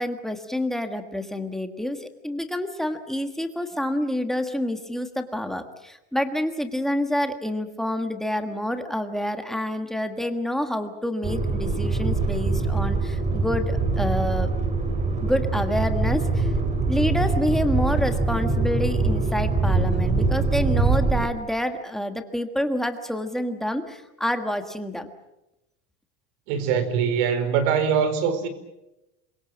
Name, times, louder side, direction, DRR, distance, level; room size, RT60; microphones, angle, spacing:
voice 1, 0.0-14.5 15.2-16.5 16.9-25.1, left 1 dB, ahead, 1.5 m, -28 dB
sound 1, 11.2-21.3, right 3 dB, 20° right, 2.4 m, -23 dB
voice 2, 26.5-28.5, right 7 dB, 70° right, 4.6 m, -23 dB
28.0 x 23.5 x 7.4 m
cardioid pair, 175°, 35 cm